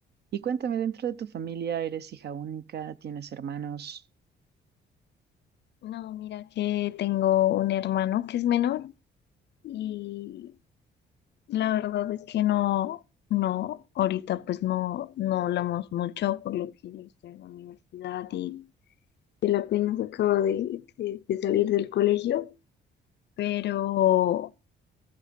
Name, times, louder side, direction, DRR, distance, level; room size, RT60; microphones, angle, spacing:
voice 1, 0.3-4.0, right 8 dB, 55° right, 0.6 m, -33 dB
voice 2, 5.8-8.9 9.6-10.5 11.5-13.0 13.3-18.6 19.4-22.5 23.4-24.5, left 13 dB, 60° left, 0.5 m, -27 dB
14.5 x 6.5 x 5.1 m
cardioid pair, 90°, 20 cm